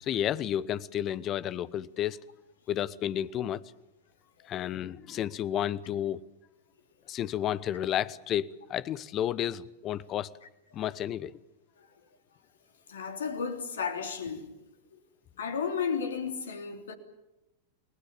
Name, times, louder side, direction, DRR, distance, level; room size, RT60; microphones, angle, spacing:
voice 1, 0.0-2.2 2.7-3.6 4.5-6.2 7.1-10.3 10.7-11.3, left 11 dB, 30° left, 1.0 m, -31 dB
voice 2, 12.9-14.5 15.4-16.9, left 6 dB, 65° left, 3.3 m, -33 dB
29.5 x 20.0 x 7.1 m
figure-of-eight pair, 90°, 0 cm